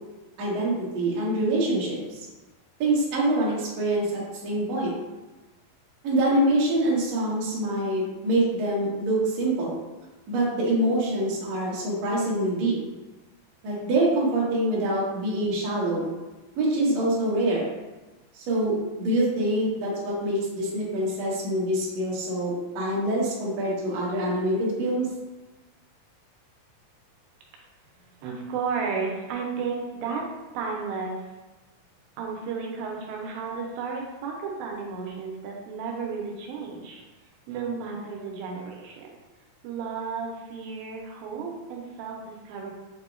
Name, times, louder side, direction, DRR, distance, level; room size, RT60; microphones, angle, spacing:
voice 1, 0.4-2.3 2.8-4.9 6.0-9.7 10.3-12.8 13.6-16.1 16.6-17.7 18.4-25.1, right 1 dB, 65° right, -6 dB, 1.8 m, -25 dB
voice 2, 28.2-30.2 30.5-31.2 32.2-37.0 37.5-39.1 39.6-42.7, right 5 dB, 85° right, 0 dB, 2.5 m, -33 dB
6.7 x 2.7 x 2.5 m, 1.1 s
omnidirectional pair, 4.2 m